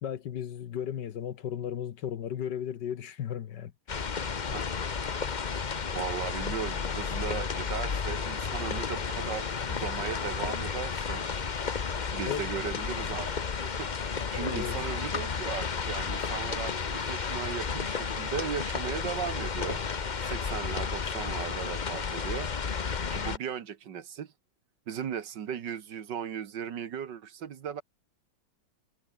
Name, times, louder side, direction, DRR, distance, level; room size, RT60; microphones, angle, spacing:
voice 1, 0.0-3.7 12.3-12.5 14.3-14.8, left 9 dB, 60° left, 1.6 m, -35 dB
sound 1, 3.9-23.4, left 5 dB, 40° left, 0.6 m, -32 dB
voice 2, 5.9-11.3 12.1-13.3 13.6-19.8 20.2-22.5 23.1-24.3 24.9-27.8, right 8 dB, 60° right, 1.9 m, -37 dB
omnidirectional pair, 2.2 m